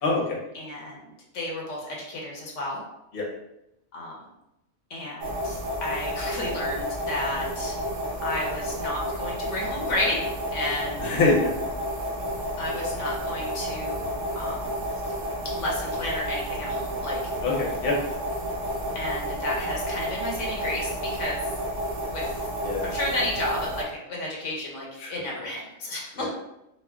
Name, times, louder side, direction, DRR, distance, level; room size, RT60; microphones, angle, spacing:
voice 1, 0.0-0.4 3.1-3.3 11.0-11.5 17.4-17.9 22.6-22.9 25.0-25.1 26.2-26.3, left 3 dB, 55° left, -2 dB, 0.9 m, -24 dB
voice 2, 0.5-2.8 3.9-4.1 4.9-7.8 8.2-10.2 10.5-11.1 12.6-14.7 15.5-17.2 18.9-21.4 22.1-22.4 22.8-26.3, left 1 dB, 75° left, -2 dB, 1.0 m, -32 dB
sound 1, 5.2-23.8, equal, 80° right, 1.1 m, -31 dB
4.2 x 2.2 x 2.2 m, 0.86 s
omnidirectional pair, 1.3 m